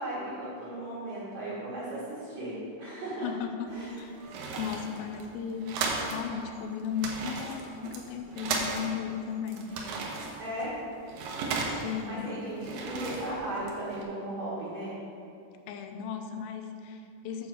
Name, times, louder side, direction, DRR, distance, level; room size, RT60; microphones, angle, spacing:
voice 1, 0.0-3.3 3.7-3.9 10.4-10.7 12.0-14.9, right 1 dB, 65° right, -9 dB, 1.7 m, -36 dB
voice 2, 3.2-4.1 4.6-9.7 11.7-12.3 15.7-17.5, left 7 dB, 90° left, 5 dB, 3.3 m, -36 dB
sound 1, 3.7-6.3 6.5-6.6 6.9-9.1 9.5-12.1 12.5-14.0, right 4 dB, 85° right, 2.3 m, -35 dB
9.1 x 4.7 x 7.0 m, 2.6 s
omnidirectional pair, 5.8 m